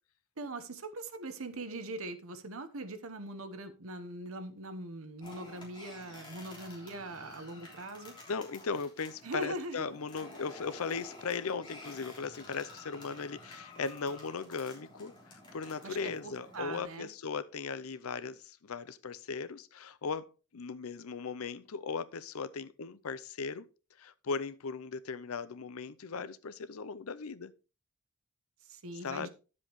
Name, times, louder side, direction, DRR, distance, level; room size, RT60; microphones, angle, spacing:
voice 1, 0.4-8.1 9.2-9.9 15.8-17.1 28.6-29.3, right 2 dB, 70° right, 1.1 m, -41 dB
sound 1, 5.2-16.8, left 1 dB, 20° left, 3.3 m, -52 dB
voice 2, 8.3-23.7 24.0-27.5 29.0-29.3, left 5 dB, 75° left, 0.6 m, -38 dB
10.5 x 7.5 x 3.1 m
head